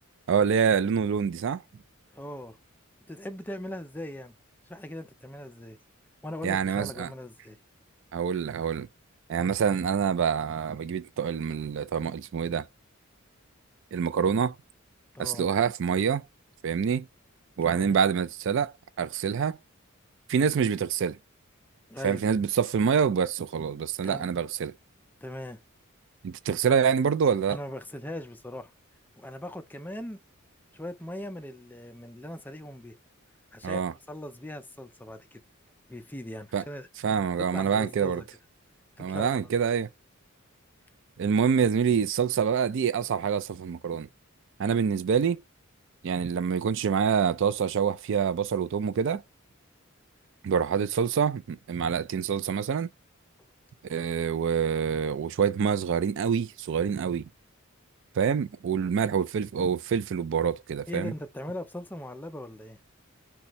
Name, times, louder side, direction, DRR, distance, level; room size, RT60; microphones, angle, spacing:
voice 1, 0.3-1.6 6.4-7.1 8.1-8.9 9.3-12.7 13.9-14.5 15.2-16.2 16.6-17.1 17.6-19.6 20.3-21.2 22.0-24.7 26.2-27.6 33.6-33.9 36.5-36.6 37.0-38.2 39.0-39.9 41.2-44.1 44.6-45.4 46.0-49.2 50.4-52.9 53.9-57.3 58.2-61.1, right 7 dB, 60° right, 0.4 m, -26 dB
voice 2, 2.1-2.6 3.1-4.3 4.7-5.8 6.2-7.6 15.1-15.5 17.7-18.0 21.9-22.2 24.0-24.3 25.2-25.6 27.5-28.7 29.2-30.2 30.7-33.0 33.5-33.8 34.1-35.4 35.9-36.9 37.5-38.3 39.0-39.4 60.9-62.8, left 1 dB, 10° left, 0.4 m, -39 dB
4.1 x 2.3 x 3.0 m
head